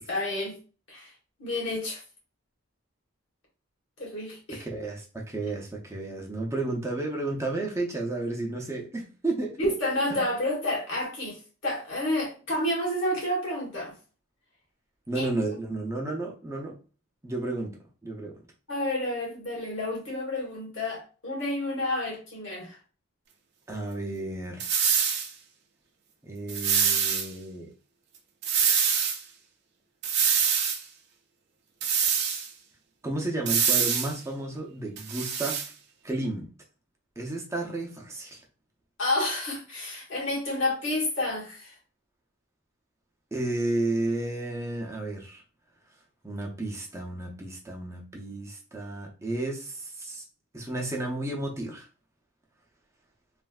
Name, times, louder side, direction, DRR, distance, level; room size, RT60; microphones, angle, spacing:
voice 1, 0.1-0.6 0.9-1.1 1.4-2.0 4.0-4.6 9.6-13.9 15.1-15.3 18.7-22.8 39.0-41.7, left 1 dB, 65° left, 1.5 m, -30 dB
voice 2, 4.6-9.6 10.1-10.3 15.1-16.8 17.2-18.4 23.7-24.6 26.2-27.7 33.0-35.7 36.0-36.5 37.2-38.4 43.3-45.4 46.2-50.2 50.5-51.9, right 2 dB, 15° right, 0.6 m, -32 dB
sound 1, 24.6-25.3 26.5-27.3 28.4-29.2 30.0-30.8 31.8-32.5 33.5-34.1 35.0-35.7, right 7 dB, 55° right, 0.6 m, -25 dB
3.2 x 2.5 x 2.3 m
head